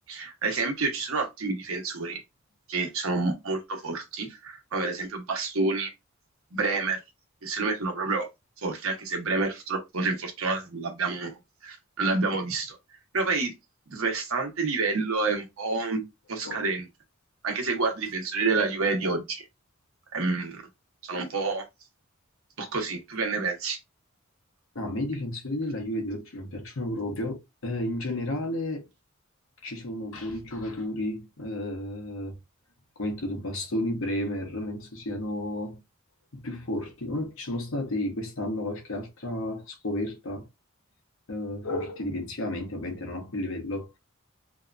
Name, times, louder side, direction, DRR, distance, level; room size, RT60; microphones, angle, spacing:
voice 1, 0.1-2.2 2.7-5.9 6.5-7.0 7.4-8.3 8.6-12.8 13.1-13.5 13.9-16.0 16.3-16.9 17.4-19.4 20.1-20.6 21.0-21.6 22.6-23.8, right 3 dB, 75° right, 0.9 m, -28 dB
voice 2, 24.7-28.9 29.6-32.4 33.0-35.8 36.3-40.5 41.3-43.9, left 1 dB, 70° left, 0.8 m, -32 dB
2.8 x 2.2 x 2.4 m
head